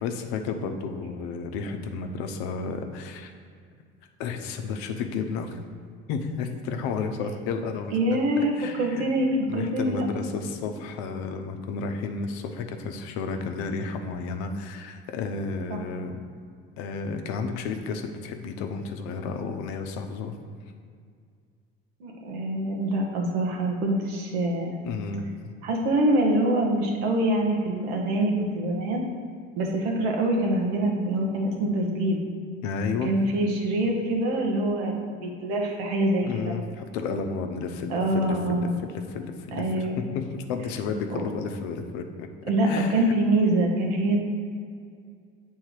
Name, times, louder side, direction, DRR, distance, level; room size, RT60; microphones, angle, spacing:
voice 1, 0.0-3.3 4.2-5.6 6.1-8.0 8.4-9.1 9.5-16.2 16.8-20.4 24.8-25.5 32.6-33.1 36.2-42.3 42.7-43.0, left 4 dB, 70° left, 5 dB, 0.8 m, -32 dB
voice 2, 7.9-8.5 8.8-10.0 15.7-15.8 22.0-24.8 25.6-29.0 29.6-32.2 33.0-36.5 37.9-38.7 39.5-40.0 41.1-41.2 42.5-44.2, right 1 dB, 75° right, 0 dB, 1.3 m, -25 dB
8.6 x 3.5 x 4.8 m, 2.2 s
hypercardioid pair, 60°, 31 cm